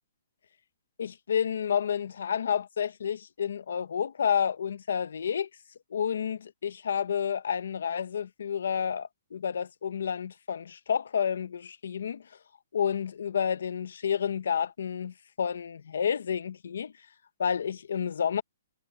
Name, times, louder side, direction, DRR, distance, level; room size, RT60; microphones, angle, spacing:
voice 1, 1.0-5.5 5.9-12.2 12.7-16.9 17.4-18.4, left 7 dB, 75° left, 1.1 m, -30 dB
hypercardioid pair, 160°, 0 cm